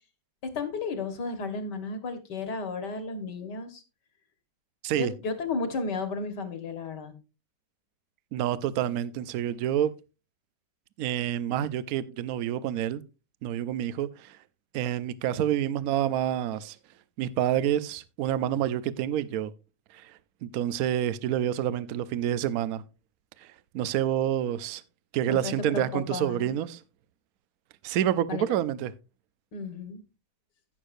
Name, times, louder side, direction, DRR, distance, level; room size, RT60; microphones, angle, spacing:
voice 1, 0.4-3.8 4.9-7.1 25.3-26.5 28.3-28.6 29.5-30.0, left 4 dB, 65° left, 2.1 m, -33 dB
voice 2, 8.3-10.0 11.0-13.0 13.4-14.4 14.7-16.8 17.2-19.5 19.9-20.1 20.4-22.8 23.4-23.5 23.7-24.8 25.1-26.8 27.8-28.9, right 11 dB, 65° right, 1.0 m, -28 dB
16.5 x 6.5 x 2.6 m
omnidirectional pair, 2.0 m